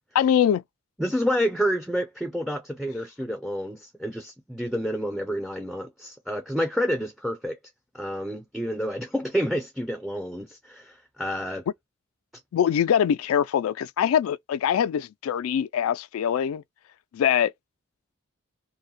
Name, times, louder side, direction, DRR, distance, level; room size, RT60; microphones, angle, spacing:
voice 1, 0.1-0.6 12.5-16.6 17.1-17.5, left 9 dB, 85° left, 0.3 m, -23 dB
voice 2, 1.0-7.6 7.9-11.6, equal, ahead, 0.3 m, -29 dB
2.7 x 2.1 x 4.0 m
head